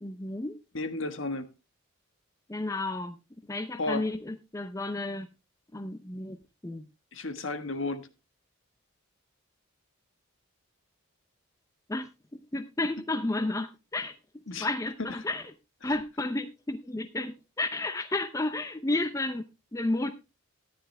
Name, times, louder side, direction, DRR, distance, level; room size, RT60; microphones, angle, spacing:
voice 1, 0.0-0.6 2.5-3.2 3.5-5.3 5.7-6.4 6.6-6.9 11.9-14.1 14.6-15.4 15.8-19.4 19.7-20.1, left 2 dB, 15° left, 0.5 m, -32 dB
voice 2, 0.7-1.5 3.8-4.1 7.1-8.1 14.5-14.7 15.8-15.9, left 2 dB, 60° left, 1.4 m, -33 dB
13.5 x 10.0 x 3.3 m
head